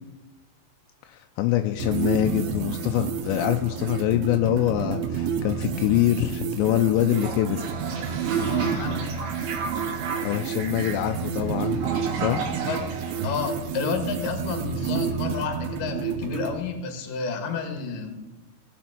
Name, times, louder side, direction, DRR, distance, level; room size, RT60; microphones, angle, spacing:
voice 1, 1.1-7.7 10.2-11.8 12.1-12.5, left 13 dB, 85° left, 6 dB, 2.7 m, -24 dB
sound 1, 1.8-16.6, right 7 dB, 85° right, 3.5 m, -30 dB
Toilet flush, 7.1-14.0, right 5 dB, 60° right, 3.7 m, -33 dB
voice 2, 8.4-9.0 12.6-12.8 13.2-18.1, left 5 dB, 60° left, 5 dB, 2.9 m, -30 dB
18.0 x 7.3 x 6.0 m, 1.1 s
omnidirectional pair, 5.3 m